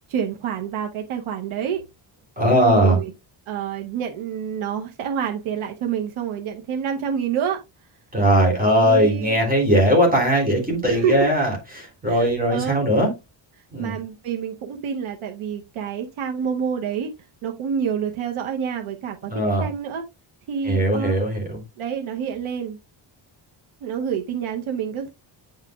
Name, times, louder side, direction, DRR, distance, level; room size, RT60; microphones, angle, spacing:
voice 1, 0.1-1.8 2.6-3.1 3.5-7.6 8.6-9.4 10.9-11.3 12.1-12.8 13.8-17.1 17.4-19.3 19.6-20.0 20.5-21.2 21.8-22.8 23.8-25.1, right 7 dB, 90° right, 1.0 m, -27 dB
voice 2, 2.4-3.0 8.1-13.1 13.7-14.0 19.3-19.7 20.6-21.6, right 1 dB, 20° right, 3.2 m, -19 dB
8.7 x 5.7 x 2.3 m
cardioid pair, 130°, 48 cm